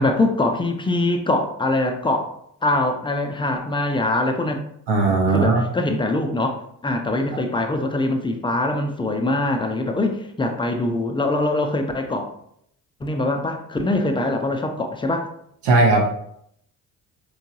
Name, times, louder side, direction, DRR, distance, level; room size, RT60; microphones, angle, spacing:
voice 1, 0.0-2.3 2.6-4.6 5.3-12.3 13.0-15.3, left 2 dB, 10° left, 5 dB, 0.4 m, -23 dB
voice 2, 4.9-5.6 15.6-16.1, right 3 dB, 55° right, 0 dB, 0.9 m, -17 dB
4.4 x 2.3 x 2.7 m, 0.70 s
figure-of-eight pair, 40°, 49 cm